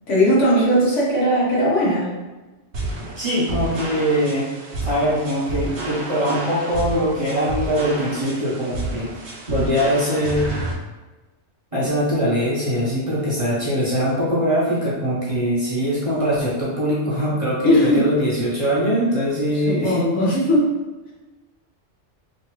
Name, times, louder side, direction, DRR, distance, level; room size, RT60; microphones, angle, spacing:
voice 1, 0.1-2.1 17.6-18.0 19.6-20.7, equal, 85° left, -5 dB, 1.3 m, -18 dB
sound 1, 2.7-10.7, right 2 dB, 65° right, 0.9 m, -30 dB
voice 2, 3.2-4.5 4.8-9.1 9.5-10.5 11.7-20.1, equal, 35° right, -8 dB, 0.6 m, -22 dB
3.1 x 2.3 x 3.0 m, 1.2 s
omnidirectional pair, 1.2 m